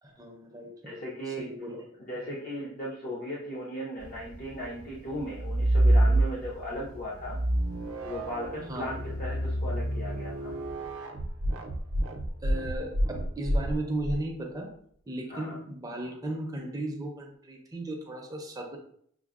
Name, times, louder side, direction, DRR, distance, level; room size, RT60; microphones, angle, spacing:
voice 1, 0.0-1.0 1.3-1.8 8.7-9.0 12.4-14.7 15.1-18.8, right 1 dB, 15° right, 1 dB, 0.5 m, -36 dB
voice 2, 0.8-7.4 8.0-10.5 15.3-15.6, equal, 40° left, -5 dB, 0.5 m, -37 dB
sound 1, 4.0-11.0, equal, 70° left, 1.4 m, -48 dB
sound 2, 5.3-6.7 7.2-14.2, right 1 dB, 70° right, 0.5 m, -27 dB
6.0 x 2.0 x 2.3 m, 0.63 s
head